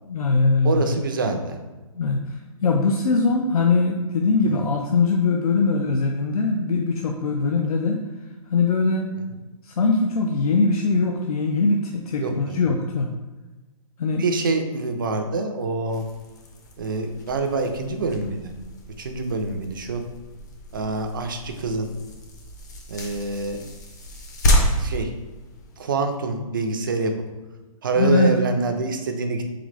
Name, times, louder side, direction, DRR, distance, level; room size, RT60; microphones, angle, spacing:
voice 1, 0.1-0.8 2.0-2.2 2.6-8.0 8.5-9.1 9.6-13.1 14.0-14.2 28.0-28.3, left 3 dB, 90° left, 2 dB, 0.5 m, -21 dB
voice 2, 0.6-1.6 4.5-4.7 12.2-12.6 14.2-16.0 16.8-18.5 19.0-20.0 20.7-21.9 22.9-23.6 24.8-25.1 25.8-27.1 27.8-29.4, right 3 dB, 35° right, 6 dB, 0.4 m, -26 dB
sound 1, 15.9-26.0, equal, 30° left, 0.5 m, -29 dB
3.9 x 3.6 x 3.2 m, 1.1 s
hypercardioid pair, 175°, 18 cm